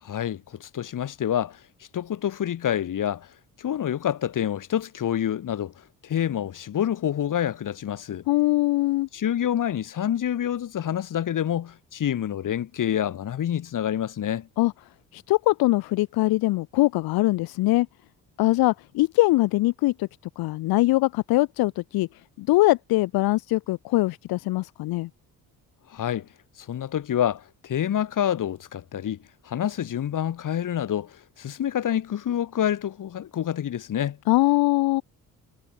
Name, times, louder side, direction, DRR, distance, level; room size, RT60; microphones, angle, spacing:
voice 1, 0.0-1.6 1.9-3.3 3.6-5.7 6.0-8.2 9.1-14.5 25.9-26.3 26.6-29.2 29.4-34.2, left 10 dB, 60° left, 5.2 m, -27 dB
voice 2, 8.3-9.1 14.6-14.7 15.1-17.9 18.4-20.1 20.4-22.1 22.4-25.1 34.3-35.0, left 19 dB, 90° left, 1.7 m, -22 dB
cardioid pair, 90°, 35 cm